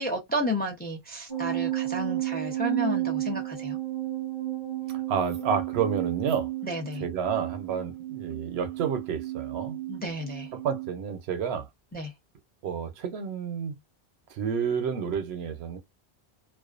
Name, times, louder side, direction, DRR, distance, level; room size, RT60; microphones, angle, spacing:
voice 1, 0.0-3.8 6.6-7.0 9.9-10.5 11.9-12.1, equal, 10° left, 0.5 m, -32 dB
sound 1, 1.3-11.0, right 15 dB, 30° left, 1.0 m, -32 dB
voice 2, 5.1-6.5 7.0-9.8 10.5-11.7 12.6-13.8 14.3-15.8, right 7 dB, 80° right, 0.8 m, -30 dB
2.4 x 2.1 x 2.4 m
omnidirectional pair, 1.1 m